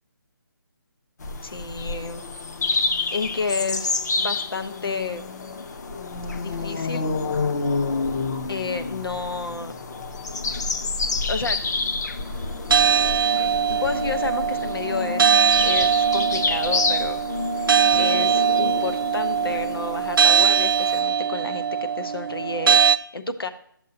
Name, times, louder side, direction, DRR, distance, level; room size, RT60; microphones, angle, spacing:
sound 1, 1.2-21.0, left 3 dB, 50° left, 0.8 m, -28 dB
voice 1, 1.4-2.2 3.1-5.3 6.4-7.1 8.5-9.8 11.3-11.6 13.4-17.2 17.6-23.5, left 4 dB, 85° left, 8 dB, 0.9 m, -31 dB
sound 2, 12.7-23.0, right 8 dB, 70° right, 0.6 m, -21 dB
11.5 x 7.3 x 2.8 m, 0.67 s
hypercardioid pair, 165°, 12 cm